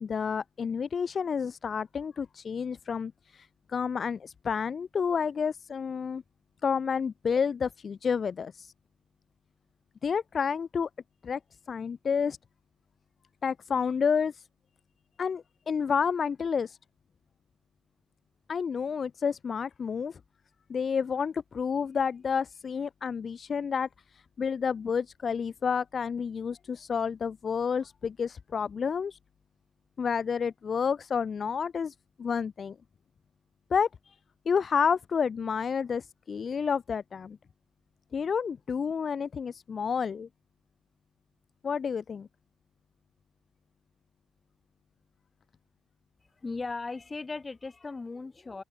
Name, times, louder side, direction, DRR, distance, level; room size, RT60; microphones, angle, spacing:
voice 1, 0.0-6.2 6.6-8.7 10.0-10.9 11.2-11.4 11.7-12.4 13.4-14.5 15.2-16.8 18.5-20.2 20.7-29.2 30.0-32.8 33.7-34.2 34.5-37.4 38.1-40.3 41.6-42.3, left 6 dB, 45° left, 0.7 m, -30 dB
voice 2, 46.4-48.6, left 3 dB, 25° left, 3.0 m, -37 dB
open air
cardioid pair, 90°, 0 cm